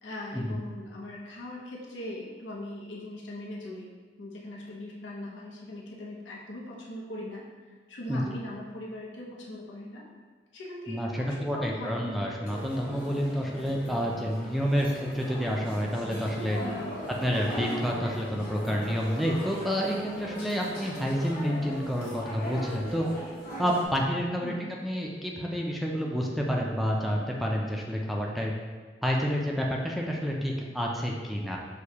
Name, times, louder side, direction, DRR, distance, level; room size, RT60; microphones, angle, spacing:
voice 1, 0.0-3.9 4.2-10.0 10.5-12.1 16.6-16.9 24.4-24.7, left 1 dB, 90° left, -4 dB, 0.7 m, -40 dB
voice 2, 10.9-16.6 17.2-23.0 23.6-24.5 24.8-28.5 29.0-31.6, equal, ahead, -2 dB, 0.4 m, -29 dB
sound 1, 12.4-23.9, equal, 50° left, 1.4 m, -39 dB
6.4 x 2.2 x 2.8 m, 1.5 s
head